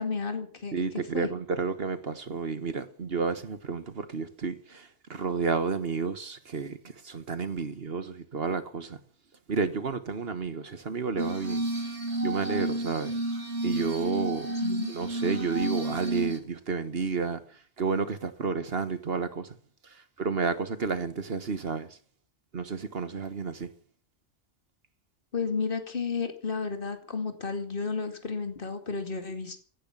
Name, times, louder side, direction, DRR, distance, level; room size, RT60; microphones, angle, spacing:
voice 1, 0.0-0.8 1.1-1.3 14.6-14.9 25.3-29.6, left 4 dB, 55° left, 2.4 m, -32 dB
voice 2, 0.7-9.0 9.5-11.6 12.2-13.2 13.6-14.5 14.9-17.4 17.8-19.6 20.2-21.9 22.5-23.7, right 5 dB, 65° right, 1.6 m, -31 dB
Glass, 11.2-16.4, right 1 dB, 85° right, 2.8 m, -31 dB
16.5 x 10.5 x 7.4 m
omnidirectional pair, 1.1 m